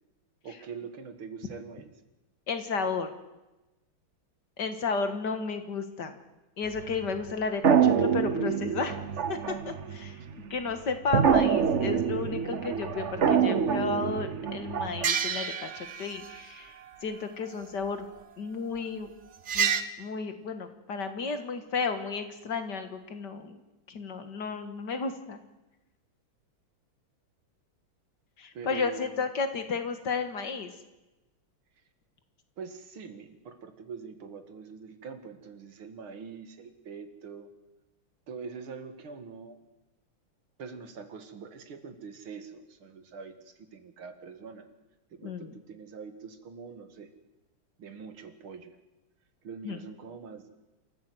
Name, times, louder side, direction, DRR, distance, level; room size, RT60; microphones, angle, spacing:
voice 1, 0.4-1.9 28.5-29.3 32.6-37.5 38.3-39.6 40.6-44.7 45.1-47.1 47.8-48.7 49.4-50.5, right 5 dB, 75° right, 9 dB, 2.6 m, -44 dB
voice 2, 2.5-3.1 4.6-6.2 6.6-9.0 9.3-10.2 10.5-16.7 17.0-18.1 18.4-19.1 19.5-19.7 20.0-23.6 23.9-25.4 28.4-30.7 45.2-45.5 49.6-49.8, left 4 dB, 55° left, 8 dB, 2.1 m, -33 dB
sound 1, 6.7-7.3 7.6-10.5 10.9-16.4 19.5-19.8, right 7 dB, 50° right, 1.0 m, -26 dB
27.0 x 14.5 x 7.9 m, 1.0 s
omnidirectional pair, 2.3 m